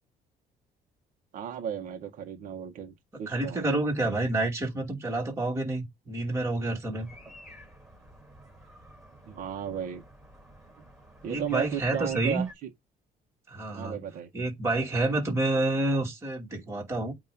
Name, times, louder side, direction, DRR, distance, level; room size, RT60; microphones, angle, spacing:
voice 1, 1.3-3.7 9.3-10.0 11.2-12.7 13.7-14.3, right 8 dB, 60° right, 1.5 m, -35 dB
voice 2, 3.3-7.1 11.3-12.5 13.5-14.0 14.3-17.1, right 2 dB, 20° right, 2.7 m, -28 dB
sound 1, 7.0-12.5, equal, ahead, 5.0 m, -51 dB
8.6 x 3.1 x 5.4 m
cardioid pair, 160°, 15 cm